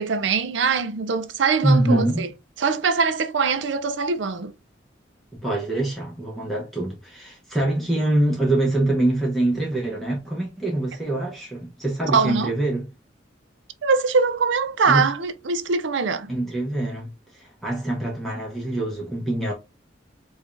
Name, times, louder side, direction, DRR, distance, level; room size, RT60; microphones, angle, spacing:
voice 1, 0.0-2.3 2.6-4.5 12.1-12.5 13.8-16.3, right 5 dB, 75° right, 0.5 m, -22 dB
voice 2, 1.6-2.3 5.4-12.9 14.9-15.1 16.3-19.5, right 1 dB, ahead, 0.9 m, -24 dB
4.8 x 2.4 x 2.5 m
head